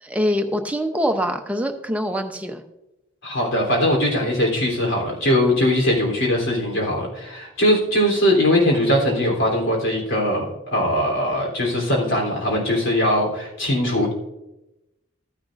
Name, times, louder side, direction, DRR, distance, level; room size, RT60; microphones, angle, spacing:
voice 1, 0.0-2.6, equal, 5° right, 4 dB, 0.7 m, -24 dB
voice 2, 3.2-10.4 10.7-14.1, left 1 dB, 75° left, -1 dB, 3.4 m, -20 dB
14.5 x 10.5 x 2.6 m, 0.95 s
head